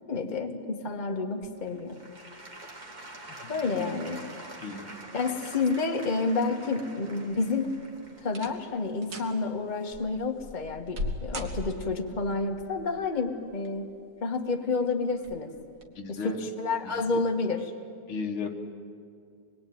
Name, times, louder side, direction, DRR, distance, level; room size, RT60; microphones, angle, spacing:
voice 1, 0.1-2.0 3.5-4.3 5.1-7.8 8.2-13.9 14.2-15.5 16.1-17.7, left 3 dB, 25° left, 3 dB, 1.5 m, -30 dB
Applause / Crowd, 1.4-10.3 10.9-11.0, right 2 dB, 20° right, 1.8 m, -46 dB
voice 2, 3.4-4.0 4.6-4.9 16.0-16.5 16.8-17.2 18.1-18.6, left 4 dB, 90° left, 4 dB, 2.4 m, -36 dB
sound 1, 7.5-7.8 8.3-8.7 9.0-9.3 9.9-12.1 13.3-13.9 14.3-14.4 15.2-15.4 15.8-15.9, left 1 dB, 60° right, 2.4 m, -37 dB
25.5 x 21.0 x 9.4 m, 2.4 s
omnidirectional pair, 2.2 m